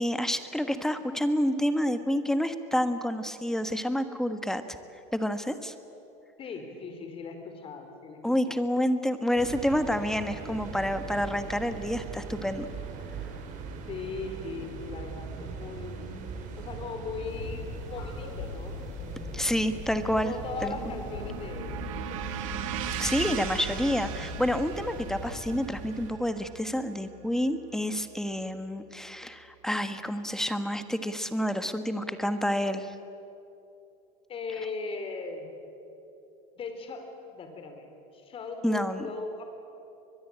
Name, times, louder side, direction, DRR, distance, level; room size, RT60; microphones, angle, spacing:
voice 1, 0.0-4.6 5.1-5.7 8.2-12.7 19.3-20.3 20.6-20.7 23.0-32.9 38.6-39.1, equal, 5° left, 9 dB, 1.4 m, -28 dB
voice 2, 6.4-8.2 8.5-8.6 13.9-16.0 16.6-18.8 20.2-22.2 34.3-35.5 36.6-37.9 38.1-39.4, left 4 dB, 35° left, 6 dB, 4.2 m, -38 dB
sound 1, 9.4-26.1, right 5 dB, 50° right, 4.0 m, -41 dB
sound 2, 17.3-25.6, left 6 dB, 70° left, 6.0 m, -42 dB
sound 3, 20.3-28.3, right 10 dB, 85° right, 2.1 m, -39 dB
22.5 x 22.0 x 8.8 m, 2.8 s
supercardioid pair, 130°, 17 cm